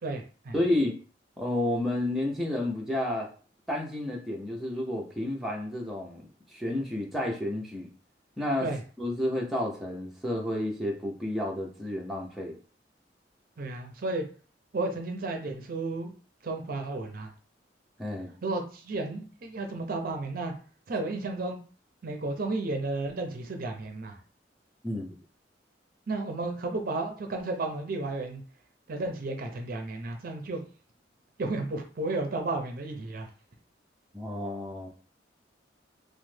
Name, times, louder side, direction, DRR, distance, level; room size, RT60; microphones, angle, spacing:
voice 1, 0.0-0.5 8.6-8.8 13.6-14.3 14.7-16.1 16.4-17.3 18.4-20.5 20.9-21.6 22.0-24.2 26.1-28.4 28.9-30.6 31.4-33.3, right 2 dB, 50° right, 4 dB, 0.5 m, -33 dB
voice 2, 0.5-1.0 1.4-3.3 3.7-7.9 8.4-8.7 9.0-12.6 18.0-18.3 24.8-25.1 34.1-34.9, left 1 dB, ahead, -2 dB, 0.5 m, -31 dB
3.1 x 2.1 x 3.2 m, 0.39 s
head